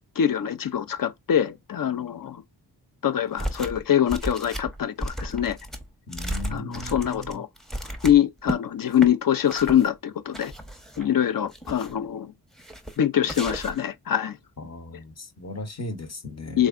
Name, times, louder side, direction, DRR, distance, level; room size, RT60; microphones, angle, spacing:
voice 1, 0.2-2.4 3.0-5.6 6.5-7.5 8.0-10.5 11.0-12.3 13.0-14.4 16.6-16.7, left 9 dB, 55° left, 0.6 m, -24 dB
sound 1, 3.4-8.6 8.9-9.1 9.5-9.9 10.3-11.1 11.4-12.0 12.6-13.0 13.2-13.9, right 1 dB, ahead, 0.8 m, -34 dB
voice 2, 6.1-7.4 14.6-16.7, left 2 dB, 40° left, 1.0 m, -37 dB
3.7 x 3.1 x 2.4 m
cardioid pair, 60°, 40 cm